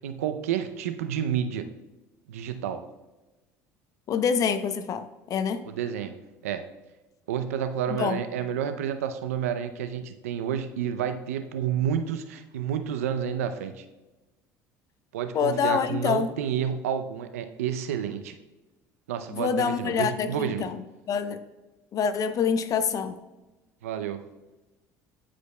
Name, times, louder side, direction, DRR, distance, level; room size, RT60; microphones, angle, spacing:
voice 1, 0.0-1.7 2.3-2.8 5.6-6.1 6.4-6.6 7.3-13.8 15.1-18.4 19.1-20.6 23.8-24.2, right 9 dB, 90° right, 9 dB, 0.5 m, -30 dB
voice 2, 4.1-5.6 8.0-8.2 15.3-16.3 19.3-20.8 21.1-21.4 21.9-23.1, left 6 dB, 50° left, 11 dB, 0.7 m, -26 dB
12.0 x 5.1 x 2.2 m, 1.1 s
hypercardioid pair, 75°, 8 cm